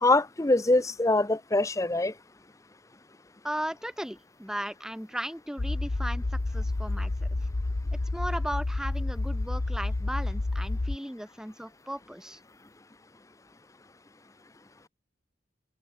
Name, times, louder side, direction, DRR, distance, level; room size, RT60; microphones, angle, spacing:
voice 1, 0.0-2.1, left 2 dB, 15° left, 0.7 m, -23 dB
voice 2, 3.4-7.3 8.1-12.4, equal, 5° right, 2.1 m, -36 dB
sound 1, 5.6-11.0, left 2 dB, 65° left, 0.9 m, -30 dB
head